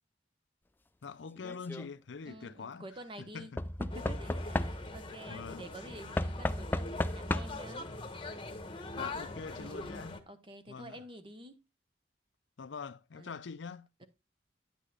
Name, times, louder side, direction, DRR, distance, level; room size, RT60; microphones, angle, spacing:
voice 1, 1.0-2.9 3.2-3.6 5.3-5.6 9.0-10.2 10.7-11.0 12.6-14.1, left 5 dB, 90° left, 0.5 m, -44 dB
Knock / Wood, 1.4-1.9 3.6-5.1 6.2-7.7 8.8-8.9 9.1-9.2, left 1 dB, 10° left, 0.3 m, -34 dB
voice 2, 2.3-3.5 3.8-7.9 9.5-11.6 13.2-13.4 14.0-14.1, right 1 dB, 30° right, 1.1 m, -49 dB
sound 1, 3.9-10.2, left 2 dB, 30° left, 1.1 m, -43 dB
10.0 x 8.3 x 2.4 m
head